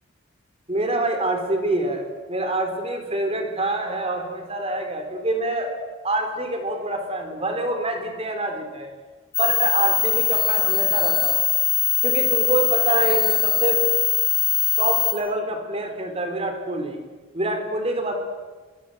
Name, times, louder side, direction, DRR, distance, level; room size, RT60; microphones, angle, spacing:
voice 1, 0.7-5.7 6.0-8.9 9.4-11.5 12.0-13.8 14.8-17.0 17.3-18.1, right 2 dB, 30° right, 5 dB, 3.9 m, -26 dB
sound 1, 9.3-15.1, left 10 dB, 20° left, 3.2 m, -21 dB
25.0 x 21.5 x 7.9 m, 1.4 s
head